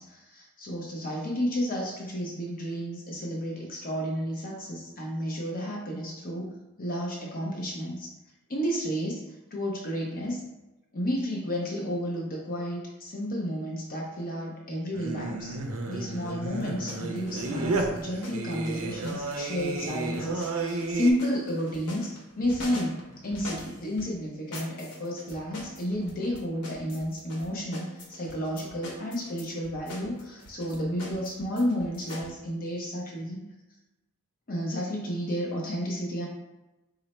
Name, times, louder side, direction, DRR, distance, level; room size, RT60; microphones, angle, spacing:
voice 1, 0.0-8.1 8.5-9.2 9.5-10.4 10.9-15.6 15.8-22.1 22.4-23.0 23.2-33.4 34.5-36.3, equal, 40° left, -3 dB, 0.6 m, -31 dB
Singing, 14.9-21.1, right 2 dB, 65° right, 0.5 m, -32 dB
sound 1, 16.5-24.1 24.5-32.3, left 1 dB, 90° left, 0.8 m, -44 dB
3.8 x 2.1 x 4.2 m, 1.0 s
head